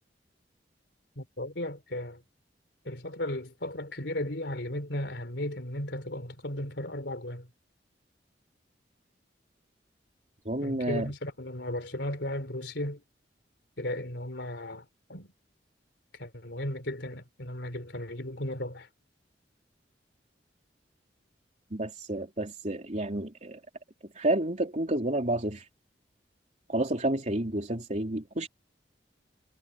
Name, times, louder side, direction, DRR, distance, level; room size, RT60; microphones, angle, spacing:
voice 1, 1.2-2.2 2.9-7.5 10.6-13.0 13.8-15.3 16.2-18.9, left 1 dB, 70° left, 3.9 m, -35 dB
voice 2, 10.5-11.1 21.7-23.6 24.1-25.6 26.7-28.5, right 1 dB, 40° right, 3.7 m, -30 dB
head